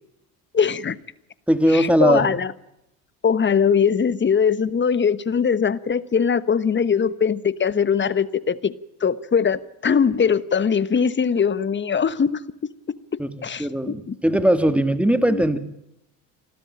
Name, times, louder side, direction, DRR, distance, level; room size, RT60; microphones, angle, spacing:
voice 1, 0.5-1.0 1.7-2.5 3.2-8.7 9.0-12.4 13.4-13.7 14.1-14.2 15.3-15.4, left 6 dB, 30° left, 1.2 m, -21 dB
voice 2, 1.5-2.4 13.2-15.6, right 1 dB, 5° right, 2.2 m, -20 dB
28.0 x 12.5 x 8.7 m
supercardioid pair, 80°, 38 cm